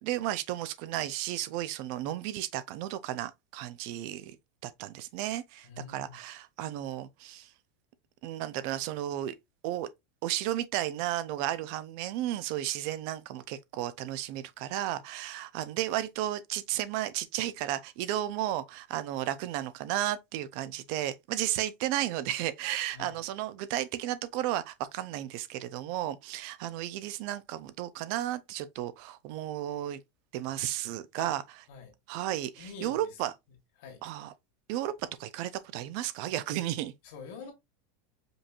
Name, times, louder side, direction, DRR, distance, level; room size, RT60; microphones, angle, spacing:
voice 1, 0.0-4.4 4.6-7.5 8.2-9.3 9.6-9.9 10.2-30.0 30.3-31.4 32.1-33.3 34.0-34.3 34.7-36.9, right 13 dB, 45° right, 0.3 m, -33 dB
voice 2, 5.6-6.1 22.9-23.2 31.2-31.3 31.7-31.9 32.6-33.2 33.8-34.0 37.0-37.5, left 5 dB, 55° left, 1.7 m, -45 dB
5.1 x 2.9 x 2.4 m
supercardioid pair, 180°, 0 cm